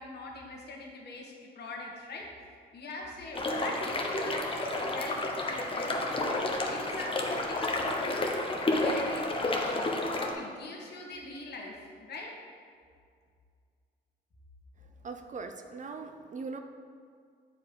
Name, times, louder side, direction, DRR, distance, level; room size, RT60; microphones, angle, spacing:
voice 1, 0.0-2.3 2.7-6.3 6.7-8.4 8.7-9.9 10.3-12.3, left 2 dB, 55° left, -2 dB, 1.7 m, -43 dB
sound 1, 3.3-10.3, left 2 dB, 25° left, 1.0 m, -30 dB
voice 2, 15.0-16.6, right 4 dB, 40° right, 6 dB, 0.5 m, -40 dB
7.9 x 4.8 x 5.3 m, 2.2 s
cardioid pair, 90°, 20 cm